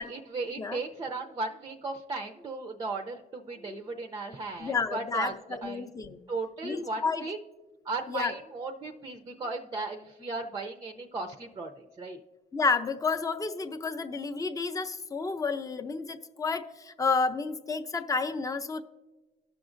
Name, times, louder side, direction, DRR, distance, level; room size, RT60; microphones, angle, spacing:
voice 1, 0.0-5.3 5.6-5.9 6.3-7.4 7.8-12.2, right 3 dB, 25° right, 5 dB, 0.5 m, -36 dB
voice 2, 4.6-6.2 6.6-7.3 8.1-8.3 12.5-18.8, left 4 dB, 20° left, 9 dB, 0.6 m, -30 dB
17.5 x 6.0 x 2.5 m, 1.2 s
cardioid pair, 110°, 17 cm